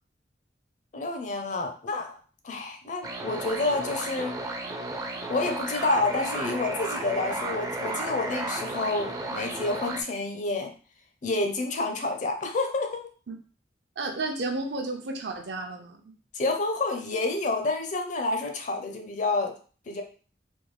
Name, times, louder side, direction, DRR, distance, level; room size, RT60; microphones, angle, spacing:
voice 1, 0.9-2.2 2.4-4.4 5.3-10.7 11.2-13.1 16.3-19.5 19.9-20.0, left 2 dB, 45° left, 4 dB, 0.5 m, -29 dB
sound 1, 3.0-10.0, right 2 dB, 20° right, 0.4 m, -33 dB
voice 2, 14.0-16.1, right 2 dB, 70° right, 4 dB, 0.6 m, -32 dB
3.5 x 2.3 x 3.1 m, 0.39 s
head